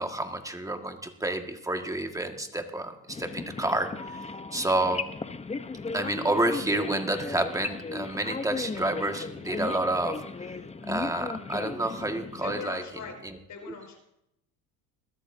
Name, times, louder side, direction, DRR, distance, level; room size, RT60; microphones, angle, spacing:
voice 1, 0.0-3.9 4.5-5.1 5.9-10.2 10.9-12.8 13.7-13.8, right 1 dB, 10° right, 5 dB, 1.8 m, -29 dB
sound 1, 3.1-12.6, left 4 dB, 15° left, 0.9 m, -36 dB
voice 2, 12.4-13.2 13.5-14.0, left 6 dB, 45° left, 2 dB, 5.4 m, -40 dB
21.5 x 13.5 x 2.7 m, 0.81 s
hypercardioid pair, 80°, 42 cm